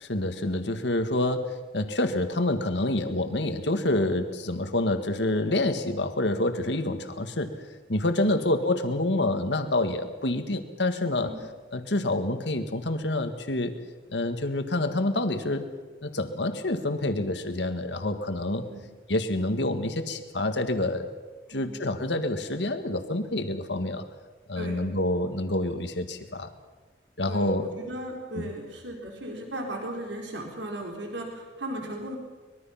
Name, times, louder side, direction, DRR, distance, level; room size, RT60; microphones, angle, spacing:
voice 1, 0.0-11.4 11.7-13.8 14.1-15.7 16.0-18.7 19.1-21.1 21.5-24.1 24.5-26.5 27.2-27.7 28.3-28.5, left 1 dB, 70° left, 8 dB, 1.8 m, -27 dB
voice 2, 27.3-32.2, right 1 dB, 80° right, 1 dB, 4.1 m, -36 dB
24.5 x 21.5 x 5.8 m, 1.3 s
head